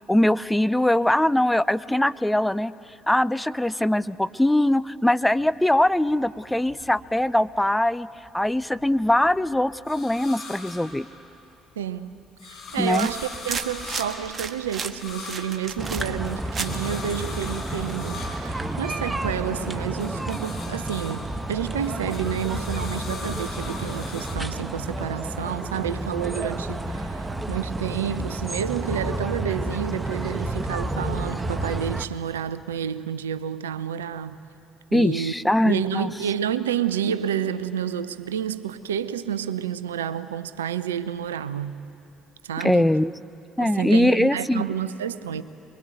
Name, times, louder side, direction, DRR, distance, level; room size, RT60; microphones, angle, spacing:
voice 1, 0.1-2.7 3.1-8.1 8.3-11.1 12.8-13.1 34.9-36.1 42.6-43.1 43.6-44.6, left 1 dB, 5° left, 15 dB, 0.5 m, -21 dB
sound 1, 5.3-7.6 8.0-11.7 12.1-19.5 19.8-24.4, left 3 dB, 55° left, 5.4 m, -41 dB
voice 2, 11.8-12.1 12.5-34.4 34.9-35.3 35.6-41.8 42.4-42.9 43.6-45.4, right 9 dB, 75° right, 14 dB, 0.6 m, -29 dB
sound 2, 12.7-19.8, right 5 dB, 35° right, 1.5 m, -36 dB
sound 3, 15.8-32.1, right 1 dB, 15° right, 1.2 m, -31 dB
23.0 x 23.0 x 9.3 m, 2.7 s
figure-of-eight pair, 50°, 0 cm